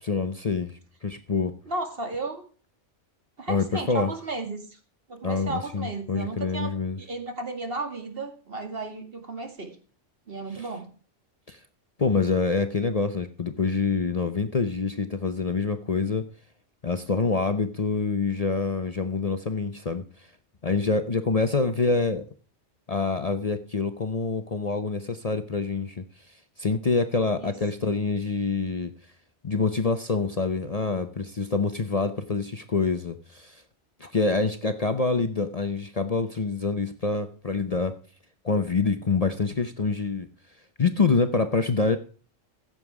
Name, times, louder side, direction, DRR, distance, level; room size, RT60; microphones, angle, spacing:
voice 1, 0.0-1.5 3.5-4.1 5.2-7.0 10.5-10.7 11.5-11.6 12.0-16.3 16.8-20.3 20.6-22.3 22.9-28.9 29.4-33.6 34.0-38.0 38.4-40.3 40.8-42.0, left 4 dB, 35° left, 9 dB, 0.8 m, -26 dB
voice 2, 1.7-2.4 3.4-4.8 5.1-6.7 7.0-9.8 10.3-10.9 27.4-27.5 27.8-27.9, right 3 dB, 50° right, 5 dB, 2.4 m, -34 dB
15.5 x 7.7 x 4.8 m, 0.40 s
omnidirectional pair, 1.2 m